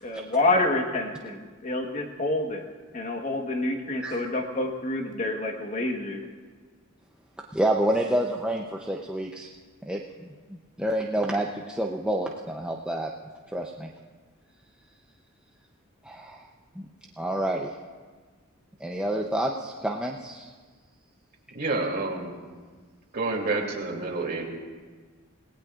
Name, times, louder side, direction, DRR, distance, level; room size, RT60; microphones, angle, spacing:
voice 1, 0.0-2.7 2.9-6.2, left 2 dB, 35° left, 3 dB, 1.4 m, -28 dB
voice 2, 7.5-9.5 9.9-13.1 13.5-13.9 16.0-16.4 17.2-17.7 18.8-20.5, right 1 dB, 5° right, -1 dB, 0.7 m, -28 dB
voice 3, 21.5-22.3 23.1-24.5, right 3 dB, 50° right, -1 dB, 2.8 m, -28 dB
26.5 x 18.5 x 2.5 m, 1.5 s
head